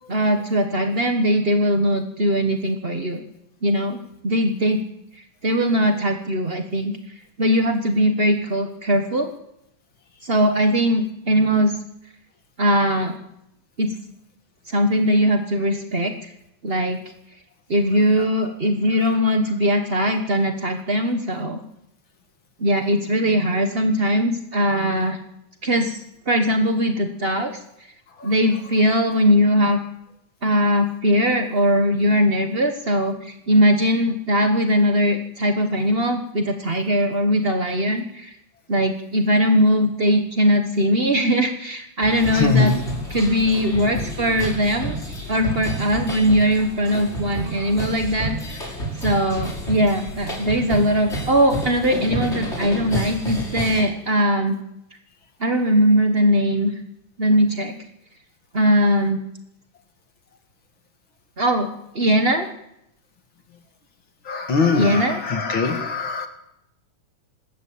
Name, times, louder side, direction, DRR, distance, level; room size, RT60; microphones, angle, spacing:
voice 1, 0.1-3.2 3.6-4.8 5.4-7.0 7.4-9.3 10.2-11.7 12.6-13.2 13.8-13.9 14.7-16.3 16.6-17.0 17.7-21.6 22.6-25.2 25.6-26.0 26.3-27.5 28.2-29.8 30.4-38.3 38.7-42.7 43.1-45.0 45.3-48.7 49.0-54.6 55.4-56.7 57.2-57.7 58.5-59.2 61.4-61.7 61.9-62.5 64.8-65.2, equal, 60° right, 5 dB, 0.6 m, -20 dB
sound 1, 42.0-53.8, right 1 dB, 20° left, 5.8 m, -30 dB
voice 2, 42.3-42.8 64.2-66.3, left 4 dB, 45° left, 6 dB, 2.3 m, -22 dB
26.0 x 13.5 x 8.6 m, 0.83 s
omnidirectional pair, 3.4 m